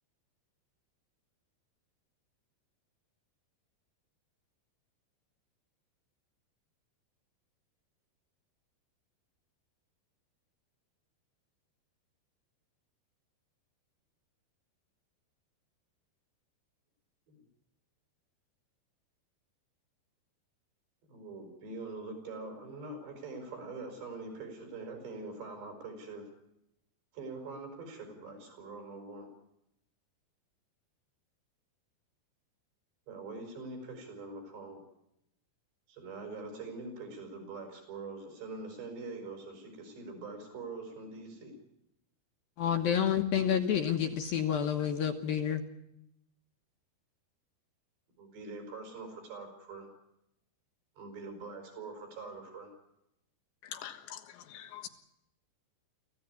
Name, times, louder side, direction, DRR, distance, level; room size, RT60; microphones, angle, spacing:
voice 1, 21.1-26.3 27.1-29.3 33.1-34.8 35.9-41.6 48.2-49.9 51.0-52.7, right 3 dB, 70° right, 4 dB, 7.9 m, -44 dB
voice 2, 42.6-45.6, left 8 dB, 65° left, 5 dB, 2.6 m, -29 dB
voice 3, 53.7-54.9, left 11 dB, 85° left, 7 dB, 4.0 m, -44 dB
25.0 x 15.5 x 9.7 m, 0.83 s
omnidirectional pair, 5.1 m